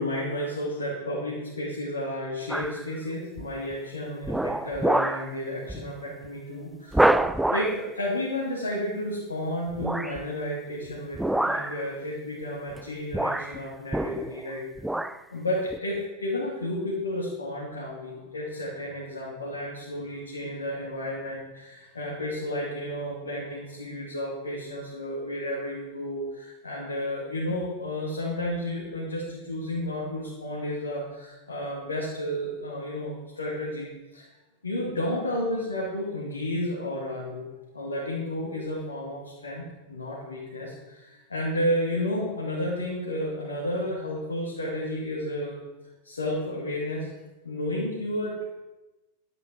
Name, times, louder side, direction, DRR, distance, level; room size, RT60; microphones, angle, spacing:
voice 1, 0.0-7.2 7.5-14.7 15.3-34.2 34.6-37.5 37.7-45.5 46.0-47.1 47.4-48.4, left 1 dB, 75° left, -5 dB, 2.2 m, -32 dB
sound 1, 2.5-2.8 3.4-3.7 4.2-5.3 5.7-5.9 6.2-6.3 6.9-7.8 9.8-10.2 11.1-11.8 12.7-12.8 13.1-14.5 14.8-15.2 15.7-15.8, right 1 dB, 5° right, 0.4 m, -26 dB
11.5 x 8.6 x 4.7 m, 1.1 s
figure-of-eight pair, 90°, 0 cm